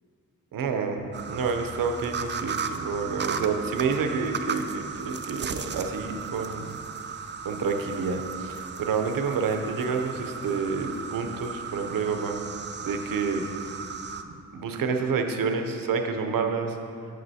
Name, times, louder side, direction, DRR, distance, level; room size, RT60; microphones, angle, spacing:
voice 1, 0.5-6.8 7.4-12.4 12.8-13.5 14.5-16.8, right 5 dB, 85° right, 5 dB, 0.6 m, -28 dB
sound 1, 1.1-14.2, right 6 dB, 35° right, 0.4 m, -36 dB
9.3 x 6.5 x 2.7 m, 2.6 s
cardioid pair, 70°, 33 cm